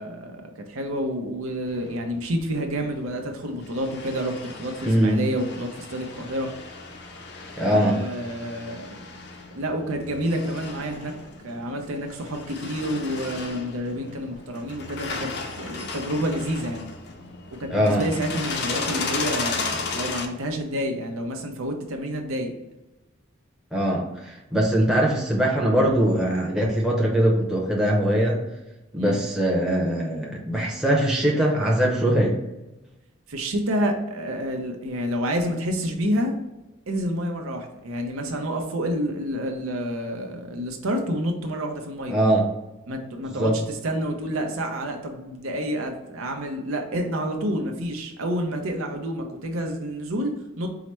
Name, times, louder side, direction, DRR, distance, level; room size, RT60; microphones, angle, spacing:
voice 1, 0.0-6.5 7.6-8.9 9.5-11.1 11.4-16.9 17.6-22.5 29.0-29.2 33.3-36.4 36.9-42.2 42.9-50.7, equal, 85° right, 3 dB, 0.7 m, -29 dB
sound 1, 1.7-20.3, left 4 dB, 55° left, 0.5 m, -35 dB
voice 2, 4.9-5.2 7.6-8.0 17.7-18.1 23.7-28.4 28.9-32.4 42.1-42.4 43.4-43.6, right 1 dB, 5° right, -4 dB, 0.7 m, -21 dB
4.7 x 2.1 x 4.3 m, 1.0 s
head